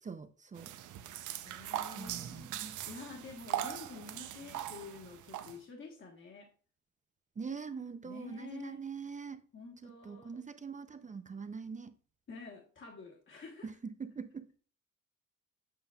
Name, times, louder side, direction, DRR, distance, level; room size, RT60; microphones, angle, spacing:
voice 1, 0.0-0.7 1.9-2.8 7.4-9.5 9.8-11.9 13.6-14.5, right 5 dB, 25° right, 0.5 m, -43 dB
sound 1, 0.5-5.6, right 11 dB, 80° right, 0.6 m, -40 dB
voice 2, 1.4-6.5 8.0-8.8 9.5-10.4 12.3-13.7, left 4 dB, 40° left, 1.3 m, -49 dB
7.7 x 5.5 x 2.3 m
cardioid pair, 90°, 30 cm